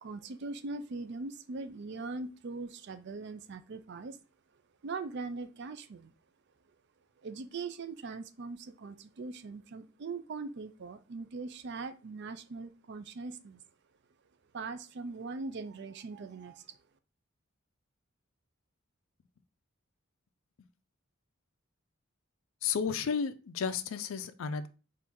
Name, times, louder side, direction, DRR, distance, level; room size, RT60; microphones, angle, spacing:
voice 1, 0.0-4.2 4.8-6.1 7.2-13.6 14.5-16.8, right 3 dB, 55° right, 10 dB, 0.4 m, -41 dB
voice 2, 22.6-24.7, left 6 dB, 70° left, 11 dB, 0.4 m, -33 dB
4.4 x 2.6 x 3.5 m, 0.32 s
head